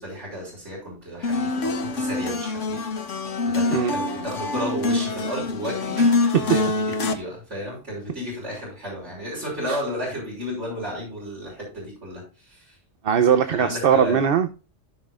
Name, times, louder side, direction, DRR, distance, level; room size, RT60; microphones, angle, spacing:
voice 1, 0.0-2.9 3.4-12.8 13.5-14.3, equal, 75° right, 5.8 m, -33 dB
sound 1, 1.2-7.1, left 3 dB, 90° left, 1.5 m, -25 dB
voice 2, 6.0-6.5 9.6-9.8 13.0-14.5, right 7 dB, 55° right, 0.9 m, -21 dB
15.5 x 6.1 x 2.4 m
omnidirectional pair, 1.2 m